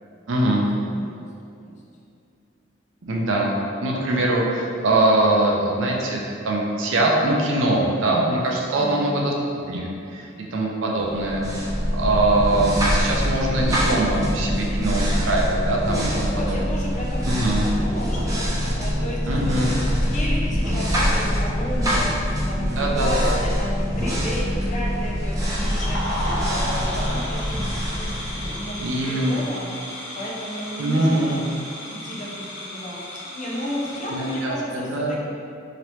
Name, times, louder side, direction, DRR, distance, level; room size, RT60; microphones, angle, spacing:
voice 1, 0.3-0.6 3.1-3.5 3.8-9.3 9.7-16.8 17.2-17.7 19.2-19.8 22.6-23.4 28.8-29.4 30.8-31.4 34.1-35.2, right 2 dB, 75° right, -1 dB, 0.5 m, -23 dB
voice 2, 0.8-1.3 1.7-1.8 8.8-9.1 15.8-19.8 20.1-22.1 22.5-26.0 26.4-27.6 28.0-29.7 30.2-35.2, left 1 dB, 35° left, -4 dB, 0.5 m, -33 dB
sound 1, 11.1-29.0, equal, 15° right, 0.5 m, -24 dB
sound 2, 25.4-34.5, equal, 75° left, 0.9 m, -34 dB
3.0 x 2.9 x 3.0 m, 2.5 s
head